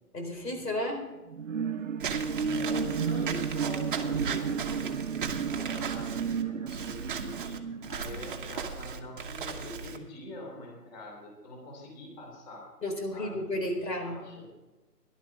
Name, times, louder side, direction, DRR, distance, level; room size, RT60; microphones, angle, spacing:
voice 1, 0.1-1.0 12.8-14.2, left 1 dB, 80° left, 4 dB, 4.2 m, -32 dB
sound 1, 1.3-9.1 9.5-9.6, right 6 dB, 50° right, 0.9 m, -33 dB
Walk footsteps / Squeak, 2.0-10.0, right 6 dB, 35° right, 1.1 m, -37 dB
voice 2, 2.4-12.7 13.1-13.5 13.8-14.5, left 1 dB, 25° left, 0 dB, 3.2 m, -44 dB
17.5 x 11.5 x 3.6 m, 1.1 s
hypercardioid pair, 155°, 48 cm